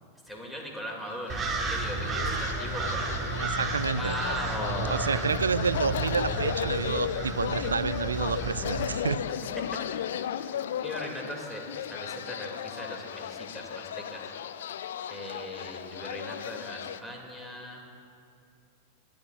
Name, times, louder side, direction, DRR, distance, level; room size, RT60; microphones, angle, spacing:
voice 1, 0.3-3.1 3.9-5.2 10.3-10.5 10.8-14.2 15.1-17.8, equal, ahead, -1 dB, 2.4 m, -39 dB
sound 1, 1.2-17.0, left 9 dB, 60° left, 0.4 m, -35 dB
sound 2, 1.3-9.0, right 3 dB, 20° right, 1.3 m, -33 dB
voice 2, 3.4-4.1 4.9-9.2, right 5 dB, 75° right, 18 dB, 0.3 m, -29 dB
26.0 x 11.5 x 2.4 m, 2.5 s
figure-of-eight pair, 90°, 0 cm